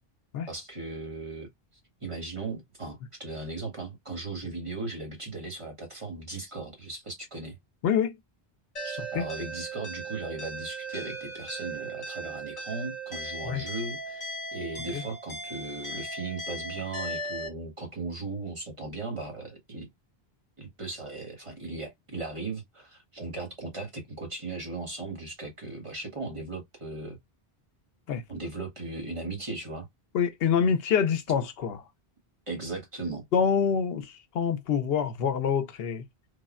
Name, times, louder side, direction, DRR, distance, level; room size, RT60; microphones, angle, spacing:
voice 1, 0.5-1.5 2.0-7.6 8.8-19.9 20.6-27.2 28.3-29.9 32.5-33.3, right 3 dB, 30° right, 1.0 m, -37 dB
voice 2, 7.8-8.2 9.2-9.3 13.4-13.6 14.9-15.0 28.1-28.2 30.1-31.8 33.3-36.0, left 7 dB, 75° left, 0.8 m, -26 dB
sound 1, 8.8-17.5, right 1 dB, 40° left, 1.2 m, -37 dB
3.3 x 2.1 x 2.3 m
omnidirectional pair, 1.0 m